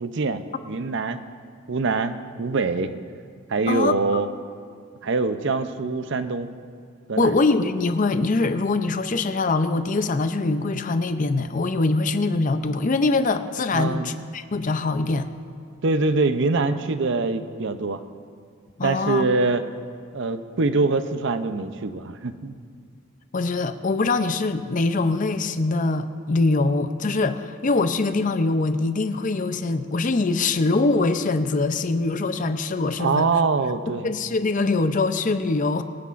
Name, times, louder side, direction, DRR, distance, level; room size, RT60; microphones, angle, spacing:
voice 1, 0.0-1.2 1.7-2.9 3.5-4.3 5.0-6.5 7.1-7.3 13.7-14.1 15.8-18.0 18.8-19.7 20.1-22.5 33.0-34.1, right 3 dB, 60° right, 10 dB, 0.6 m, -24 dB
voice 2, 7.2-15.3 18.8-19.2 23.3-33.3 34.0-35.8, left 3 dB, 40° left, 10 dB, 0.5 m, -23 dB
24.0 x 9.4 x 2.5 m, 2.1 s
head